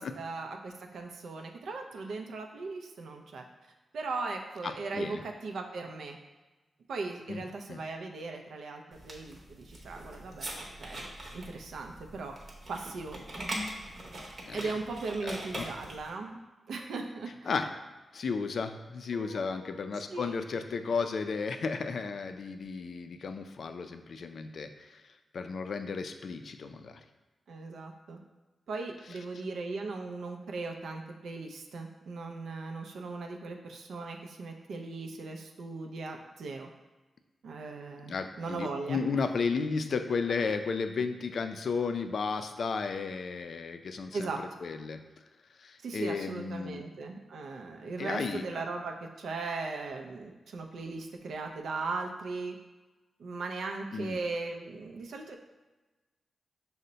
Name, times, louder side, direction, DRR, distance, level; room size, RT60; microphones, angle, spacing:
voice 1, 0.0-3.4 3.9-6.2 6.9-10.5 10.8-11.0 11.3-12.3 12.7-13.5 14.5-16.4 16.7-17.5 19.1-19.8 20.1-20.4 27.5-28.2 28.7-36.7 37.4-39.2 44.1-44.4 45.8-52.6 53.2-55.4, right 3 dB, 85° right, 3 dB, 0.4 m, -38 dB
voice 2, 4.6-5.2 7.3-7.8 14.5-14.7 15.2-15.7 17.5-17.7 18.1-25.0 25.3-27.0 38.1-45.0 45.6-46.8 48.0-48.6 53.9-54.2, left 5 dB, 60° left, 7 dB, 0.3 m, -34 dB
sound 1, 8.9-16.1, right 1 dB, 45° right, 0.8 m, -42 dB
5.4 x 2.1 x 3.8 m, 1.2 s
wide cardioid pair, 105°, 0 cm